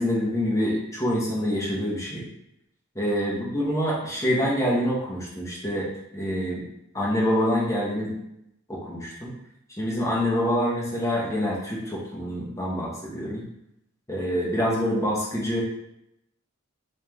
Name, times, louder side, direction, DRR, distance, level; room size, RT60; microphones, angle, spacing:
voice 1, 0.0-2.2 2.9-5.9 6.1-6.6 6.9-8.2 8.7-9.3 9.8-13.4 14.1-15.6, equal, 15° left, -5 dB, 0.8 m, -26 dB
3.1 x 3.1 x 3.5 m, 0.82 s
head